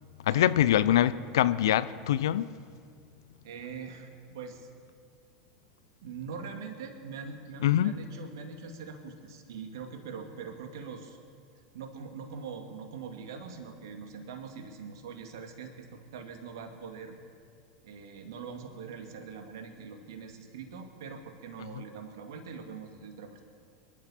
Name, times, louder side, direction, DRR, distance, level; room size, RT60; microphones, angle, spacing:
voice 1, 0.3-2.5 7.6-7.9, left 12 dB, 70° left, 16 dB, 0.6 m, -24 dB
voice 2, 3.4-4.7 6.0-11.2 11.7-17.2 17.8-23.4, right 5 dB, 70° right, 4 dB, 2.3 m, -42 dB
26.5 x 12.0 x 4.4 m, 2.2 s
figure-of-eight pair, 85°, 2 cm